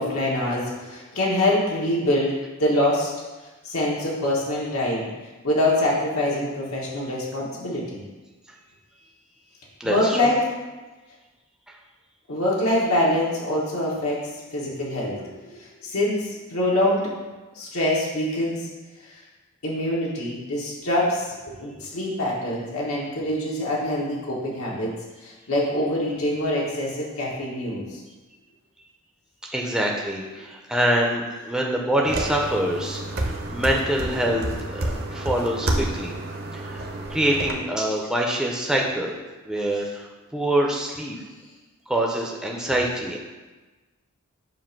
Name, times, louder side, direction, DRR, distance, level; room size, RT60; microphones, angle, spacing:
voice 1, 0.0-3.1 3.6-5.1 5.4-8.0 9.8-10.4 12.3-17.1 17.5-18.7 19.0-19.2 19.6-24.9 25.2-28.0 42.7-42.8, left 1 dB, 85° left, -4 dB, 1.3 m, -25 dB
voice 2, 9.8-10.2 29.5-36.1 36.5-36.8 37.1-39.2 39.4-40.1 40.3-41.2 41.9-43.2, right 1 dB, 5° right, -1 dB, 0.5 m, -25 dB
sound 1, 32.1-37.5, right 1 dB, 50° right, 0.7 m, -29 dB
7.4 x 2.6 x 5.8 m, 1.2 s
head